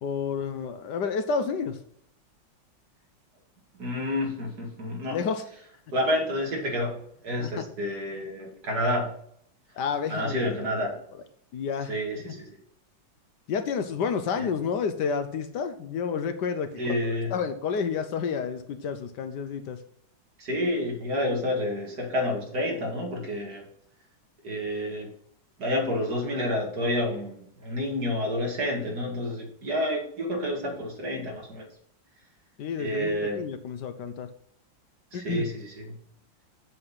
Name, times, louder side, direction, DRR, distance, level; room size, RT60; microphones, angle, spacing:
voice 1, 0.0-1.8 5.1-5.4 7.4-7.5 9.8-10.4 11.5-11.9 12.3-12.4 13.5-19.8 32.6-34.3 35.1-35.5, left 6 dB, 70° left, 9 dB, 1.3 m, -30 dB
voice 2, 3.8-5.2 5.9-9.1 10.1-11.0 11.9-12.6 14.4-14.5 16.8-17.3 20.4-23.6 24.4-25.1 25.6-31.7 32.8-33.4 35.1-36.0, left 1 dB, 55° right, 0 dB, 2.5 m, -29 dB
7.9 x 7.7 x 4.0 m, 0.67 s
omnidirectional pair, 2.0 m